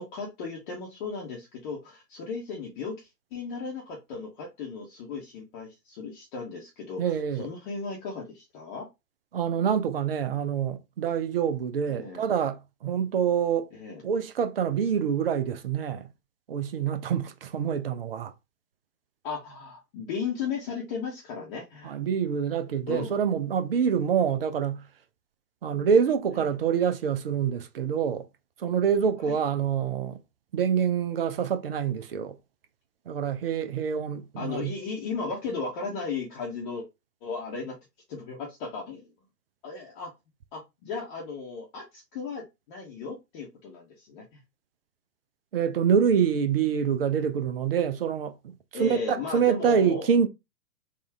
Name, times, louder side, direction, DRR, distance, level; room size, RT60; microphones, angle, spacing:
voice 1, 0.0-8.9 11.9-12.2 13.7-14.0 19.2-22.0 22.9-23.2 26.3-26.5 29.2-29.4 34.4-36.9 37.2-37.8 38.1-39.1 39.6-40.1 40.5-44.4 48.7-50.1, left 4 dB, 30° left, 0.9 m, -36 dB
voice 2, 7.0-7.5 9.3-13.7 14.0-16.1 16.5-18.3 21.8-24.8 25.6-28.3 28.6-30.2 30.5-32.4 33.1-34.7 45.5-48.5 48.8-50.3, right 7 dB, 40° right, 0.4 m, -26 dB
3.7 x 2.3 x 3.3 m
figure-of-eight pair, 115°, 49 cm